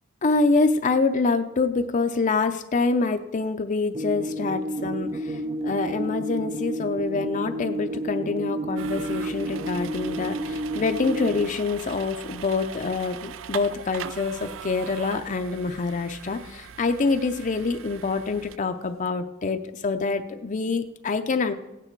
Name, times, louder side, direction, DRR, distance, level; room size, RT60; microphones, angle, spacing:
voice 1, 0.2-21.5, left 4 dB, 40° left, 7 dB, 0.5 m, -26 dB
sound 1, 3.9-11.5, right 1 dB, 30° right, 0.4 m, -30 dB
sound 2, 8.8-18.6, right 8 dB, 85° right, 0.4 m, -40 dB
16.0 x 9.1 x 4.5 m, 1.0 s
head